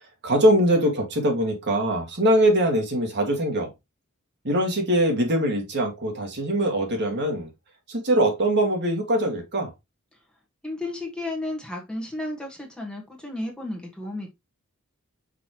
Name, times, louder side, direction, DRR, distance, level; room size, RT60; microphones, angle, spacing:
voice 1, 0.2-3.7 4.4-7.5 7.9-9.7, right 1 dB, 55° right, 2.2 m, -22 dB
voice 2, 10.6-14.3, left 2 dB, 5° left, 1.6 m, -33 dB
6.0 x 5.4 x 3.1 m
head